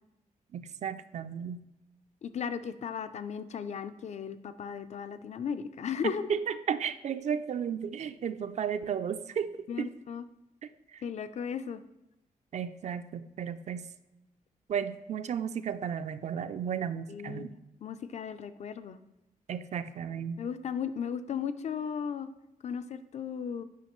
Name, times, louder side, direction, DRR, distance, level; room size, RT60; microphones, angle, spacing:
voice 1, 0.5-1.6 6.0-9.5 9.8-9.9 10.9-11.0 12.5-13.8 14.7-17.5 19.5-20.4, right 7 dB, 50° right, 11 dB, 0.4 m, -34 dB
voice 2, 2.2-6.3 9.7-10.3 11.0-11.8 17.1-19.0 20.4-22.3 22.6-23.6, left 7 dB, 50° left, 12 dB, 0.4 m, -36 dB
8.3 x 5.7 x 3.0 m, 0.92 s
wide cardioid pair, 145°, 15 cm